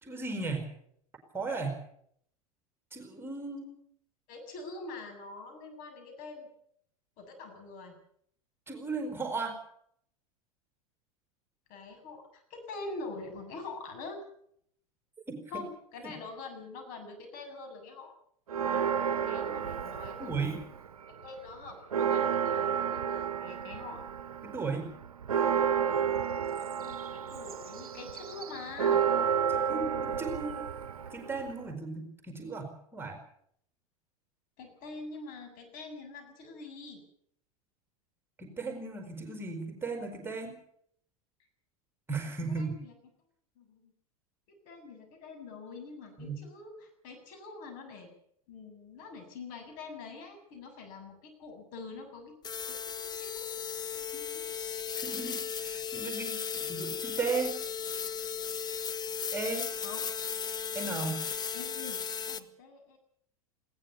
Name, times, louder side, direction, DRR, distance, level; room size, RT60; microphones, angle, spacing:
voice 1, 0.0-0.7 1.3-1.7 2.9-3.7 8.7-9.6 15.3-15.6 16.0-16.1 20.2-20.6 24.4-24.9 29.5-30.6 31.1-33.2 38.4-40.6 42.1-42.7 46.2-46.4 55.0-57.6 59.3-59.7 60.7-61.2, right 4 dB, 10° right, 5 dB, 4.8 m, -36 dB
voice 2, 4.3-6.5 7.2-7.9 11.7-14.2 15.5-18.1 19.2-20.6 21.2-24.0 26.6-29.0 34.6-37.0 42.5-42.9 43.6-43.9 44.5-48.1 48.5-52.3 52.7-53.6 53.9-54.4 59.8-60.1 61.1-61.2 61.5-62.0 62.3-63.0, left 3 dB, 45° left, 5 dB, 7.5 m, -45 dB
Church bell, 18.5-20.9 21.2-21.3 21.7-31.7, right 7 dB, 70° right, 1.0 m, -31 dB
sound 1, 52.4-62.4, left 7 dB, 20° left, 1.4 m, -36 dB
20.5 x 18.0 x 7.0 m, 0.66 s
figure-of-eight pair, 85°, 19 cm